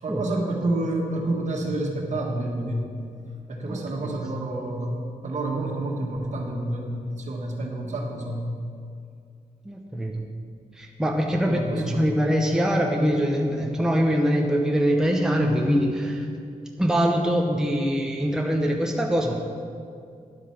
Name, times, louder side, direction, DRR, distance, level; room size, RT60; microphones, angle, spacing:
voice 1, 0.0-3.0 3.5-8.5 11.4-12.1, right 2 dB, 55° right, 0 dB, 1.7 m, -29 dB
voice 2, 3.7-4.1 9.6-10.2 10.7-16.3 16.8-19.4, equal, 5° right, 1 dB, 0.8 m, -23 dB
10.5 x 8.0 x 5.9 m, 2.3 s
wide cardioid pair, 135°, 14 cm